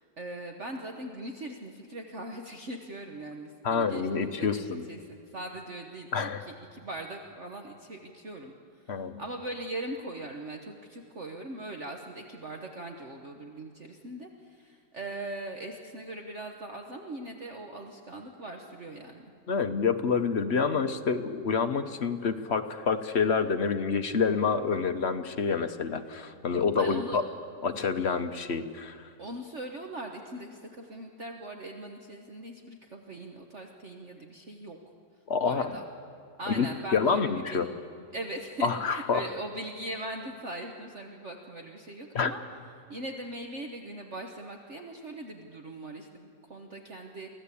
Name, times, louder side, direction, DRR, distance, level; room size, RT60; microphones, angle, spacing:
voice 1, 0.0-19.3 26.8-27.2 29.2-34.8 35.4-35.8 36.4-37.6 38.1-42.4 42.9-47.3, right 1 dB, 45° right, 3 dB, 1.5 m, -40 dB
voice 2, 3.6-4.8 6.1-6.4 8.9-9.2 19.5-27.2 27.6-29.1 35.3-35.7 36.5-36.7 36.9-37.7 38.6-39.3 42.1-42.3, left 5 dB, 50° left, 8 dB, 0.9 m, -27 dB
24.0 x 16.0 x 8.4 m, 2.5 s
omnidirectional pair, 1.9 m